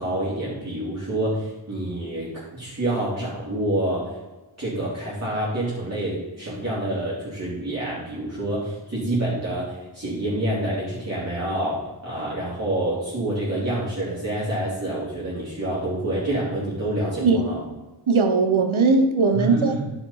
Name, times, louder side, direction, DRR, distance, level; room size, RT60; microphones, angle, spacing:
voice 1, 0.0-4.1 4.6-17.6 19.3-19.8, right 1 dB, 35° right, -9 dB, 3.4 m, -27 dB
voice 2, 18.1-19.8, right 4 dB, 80° right, 6 dB, 1.2 m, -19 dB
10.5 x 6.0 x 5.7 m, 1.1 s
wide cardioid pair, 80°, 47 cm